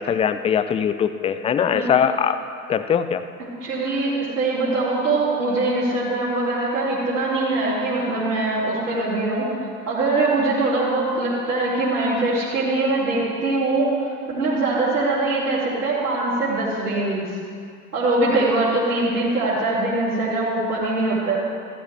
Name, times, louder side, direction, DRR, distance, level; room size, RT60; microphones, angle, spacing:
voice 1, 0.0-2.4 2.7-3.2, left 8 dB, 15° left, 11 dB, 0.4 m, -21 dB
voice 2, 3.6-9.5 9.9-17.2 17.9-21.4, right 2 dB, 80° right, -14 dB, 3.4 m, -22 dB
15.0 x 12.5 x 3.5 m, 2.2 s
figure-of-eight pair, 70°, 45 cm